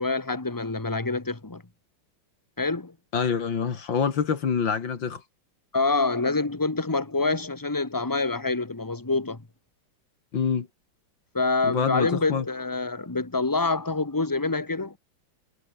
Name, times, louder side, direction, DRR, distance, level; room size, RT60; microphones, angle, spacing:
voice 1, 0.0-1.6 2.6-2.9 5.7-9.4 11.3-15.0, left 3 dB, 10° left, 1.4 m, -26 dB
voice 2, 3.1-5.2 10.3-10.7 11.6-12.4, left 6 dB, 75° left, 2.8 m, -26 dB
omnidirectional pair, 2.1 m